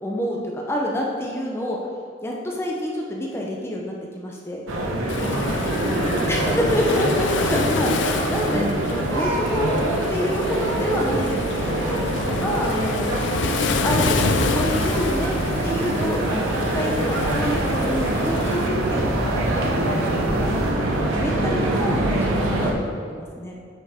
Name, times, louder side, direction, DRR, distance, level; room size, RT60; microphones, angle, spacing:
voice 1, 0.0-1.8 2.2-4.6 6.3-8.6 8.9-9.8 10.1-12.0 12.4-13.1 13.8-15.4 15.6-23.5, equal, 10° left, -2 dB, 0.6 m, -28 dB
sound 1, 4.7-22.7, right 1 dB, 90° right, 1.0 m, -24 dB
Waves surf, 5.1-18.7, left 4 dB, 65° left, 0.4 m, -29 dB
voice 2, 5.2-7.1 12.2-12.5, equal, 65° right, -6 dB, 2.0 m, -31 dB
sound 2, 13.7-20.7, right 1 dB, 50° right, 0.7 m, -32 dB
8.5 x 6.1 x 3.5 m, 2.2 s
head